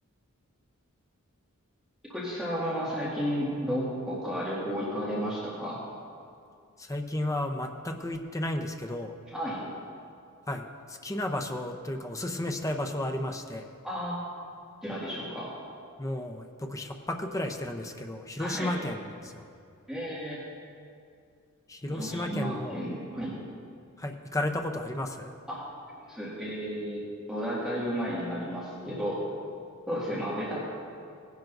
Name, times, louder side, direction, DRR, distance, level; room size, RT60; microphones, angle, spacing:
voice 1, 2.1-5.8 9.3-9.7 13.8-14.2 14.8-15.5 18.4-18.8 19.9-20.4 21.9-23.3 25.5-25.6 26.1-27.0 27.3-29.3 29.9-30.6, equal, ahead, -9 dB, 2.0 m, -32 dB
voice 2, 6.8-9.1 10.5-13.7 16.0-19.4 21.7-22.8 24.0-25.3, left 1 dB, 15° left, 4 dB, 0.7 m, -33 dB
18.0 x 10.5 x 2.6 m, 2.4 s
head